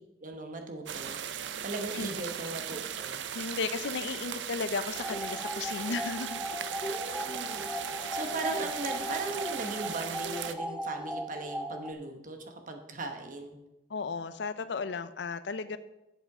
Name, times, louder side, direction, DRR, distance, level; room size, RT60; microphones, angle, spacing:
voice 1, 0.2-1.2 1.6-3.2 6.8-7.6 8.1-13.6, right 2 dB, 50° right, 5 dB, 1.1 m, -38 dB
sound 1, 0.9-10.5, right 9 dB, 90° right, 0.5 m, -38 dB
voice 2, 3.3-6.5 8.1-8.2 13.9-15.8, left 4 dB, 70° left, 13 dB, 0.5 m, -35 dB
sound 2, 5.0-11.9, equal, 5° right, 0.4 m, -37 dB
7.7 x 7.3 x 4.8 m, 0.95 s
head